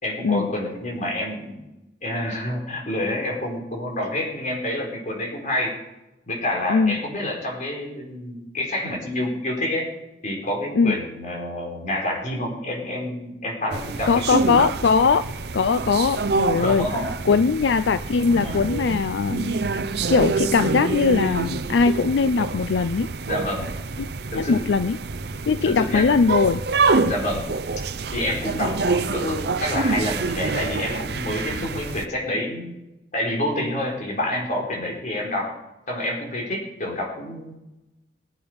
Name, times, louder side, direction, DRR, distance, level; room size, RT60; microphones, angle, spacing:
voice 1, 0.0-1.6 2.0-5.8 6.3-9.9 10.2-14.4 16.6-17.1 18.4-18.7 23.2-23.8 24.3-24.6 25.6-26.4 27.1-27.5 28.1-32.8 33.1-35.5 35.9-37.6, left 1 dB, 45° left, 0 dB, 4.4 m, -28 dB
sound 1, 13.7-32.1, right 3 dB, 65° right, 0.7 m, -27 dB
voice 2, 14.1-15.2 15.5-16.9 17.3-19.8 20.1-23.1 24.0-25.0 25.5-26.6 31.5-31.7, left 5 dB, 85° left, 13 dB, 0.4 m, -20 dB
20.5 x 8.9 x 5.2 m, 0.96 s
head